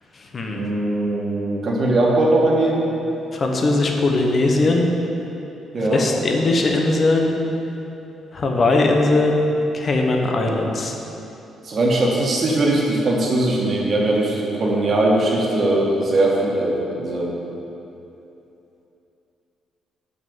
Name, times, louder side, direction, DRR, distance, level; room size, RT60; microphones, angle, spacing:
voice 1, 0.5-2.9 5.7-6.1 11.6-17.3, right 2 dB, 45° right, -2 dB, 1.7 m, -20 dB
voice 2, 3.3-4.9 5.8-7.3 8.3-10.9, left 2 dB, 40° left, 1 dB, 1.1 m, -19 dB
6.5 x 5.6 x 7.2 m, 3.0 s
cardioid pair, 90°, 0 cm